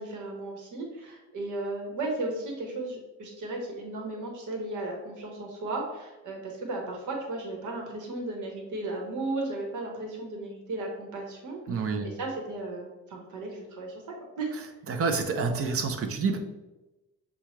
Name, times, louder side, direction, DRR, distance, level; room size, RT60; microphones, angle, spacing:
voice 1, 0.0-14.5, right 2 dB, 80° right, 2 dB, 1.2 m, -35 dB
voice 2, 11.7-12.1 14.9-16.4, right 4 dB, 50° right, 5 dB, 0.7 m, -28 dB
6.9 x 2.4 x 3.2 m, 1.0 s
cardioid pair, 90°, 30 cm